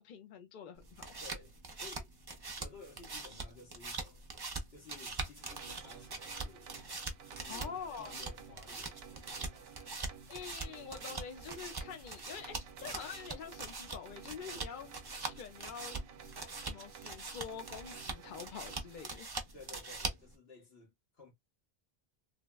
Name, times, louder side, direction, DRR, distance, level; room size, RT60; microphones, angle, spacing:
voice 1, 0.0-1.1 7.5-8.1 10.3-14.9 15.2-16.0 16.6-19.3, left 7 dB, 60° left, 0.7 m, -46 dB
sound 1, 0.8-20.4, right 3 dB, 30° right, 0.5 m, -43 dB
voice 2, 1.2-2.1 2.6-4.3 4.7-6.7 7.3-10.2 19.5-21.3, left 3 dB, 80° left, 1.6 m, -55 dB
sound 2, 5.4-19.1, right 8 dB, 75° right, 0.8 m, -55 dB
3.3 x 2.1 x 2.2 m
omnidirectional pair, 1.0 m